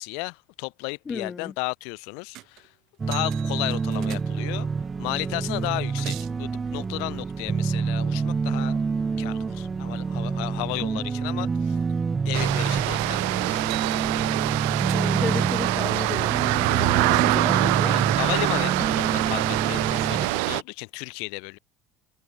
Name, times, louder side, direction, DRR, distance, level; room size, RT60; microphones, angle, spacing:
voice 1, 0.0-2.7 3.1-4.7 5.0-8.8 9.2-11.8 12.2-13.2 13.5-13.7 17.5-21.6, left 40 dB or more, 80° left, 3.0 m, -33 dB
voice 2, 1.1-1.5 3.9-4.2 14.9-18.2, left 5 dB, 20° left, 0.9 m, -34 dB
sound 1, 2.3-2.7 3.1-4.7 5.5-6.4 13.0-13.2 13.6-15.4 16.7-17.5, right 17 dB, 65° right, 1.4 m, -43 dB
sound 2, 3.0-20.3, right 5 dB, 20° right, 1.4 m, -27 dB
sound 3, 12.3-20.6, right 32 dB, 85° right, 0.9 m, -25 dB
supercardioid pair, 115°, 0 cm